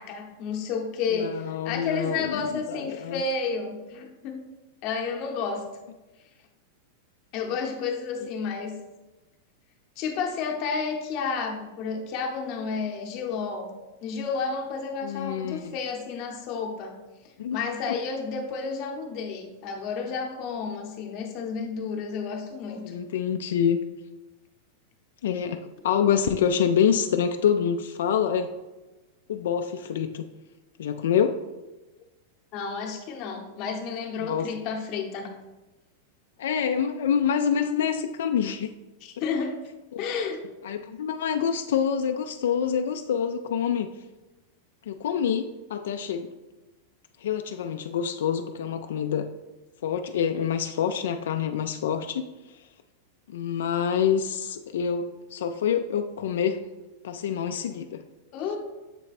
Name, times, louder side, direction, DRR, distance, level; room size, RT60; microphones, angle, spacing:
voice 1, 0.0-4.4 4.8-5.6 7.3-8.7 10.0-13.7 14.0-16.9 17.5-22.9 32.5-35.3 39.0-39.6 40.0-40.4 58.3-58.6, left 5 dB, 30° left, 2 dB, 0.8 m, -31 dB
voice 2, 1.1-3.2 15.0-15.7 17.4-17.6 22.8-23.8 25.2-28.5 29.3-30.2 30.8-31.4 34.2-34.5 36.4-38.7 39.9-40.0 40.6-43.9 44.9-46.3 47.2-49.3 49.8-52.3 53.3-56.6 57.0-58.0, left 8 dB, 75° left, 7 dB, 0.3 m, -26 dB
7.3 x 3.3 x 4.1 m, 1.1 s
supercardioid pair, 175°, 0 cm